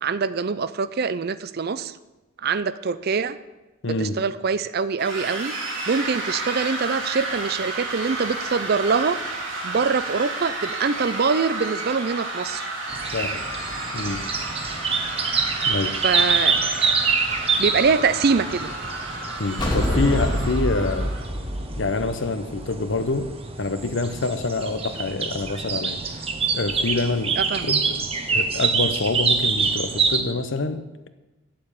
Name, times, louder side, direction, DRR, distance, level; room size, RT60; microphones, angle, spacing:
voice 1, 0.0-2.0 2.4-3.4 3.9-5.5 5.9-9.2 9.6-12.7 16.0-17.0 17.6-18.7 27.4-27.8, right 5 dB, 50° right, 15 dB, 0.5 m, -24 dB
voice 2, 3.8-4.2 13.1-13.4 13.9-14.3 15.7-16.0 19.4-21.1 21.8-26.3 26.5-28.0 28.3-31.1, left 3 dB, 60° left, 11 dB, 0.8 m, -26 dB
sound 1, 5.0-21.3, right 2 dB, 65° right, 2.5 m, -32 dB
sound 2, 12.9-30.2, right 5 dB, 25° right, 1.0 m, -26 dB
sound 3, 19.6-23.0, equal, 20° left, 1.7 m, -26 dB
8.8 x 7.6 x 8.6 m, 1.1 s
head